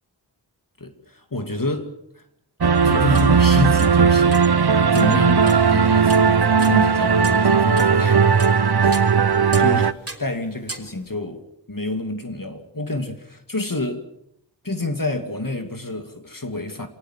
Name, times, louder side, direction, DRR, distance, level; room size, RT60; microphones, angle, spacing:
voice 1, 0.8-2.2 2.8-8.2 8.5-9.0 9.6-9.9 10.2-14.0 14.6-16.9, left 2 dB, 45° left, 2.6 m, -28 dB
sound 1, 2.6-9.9, right 6 dB, 60° right, 0.9 m, -17 dB
sound 2, 3.1-3.5 3.8-4.5 4.9-5.7 6.1-6.8 7.2-8.6 8.9-9.8 10.1-10.3 10.7-10.9, right 2 dB, 30° right, 3.5 m, -36 dB
27.0 x 18.5 x 7.6 m
wide cardioid pair, 40°, 44 cm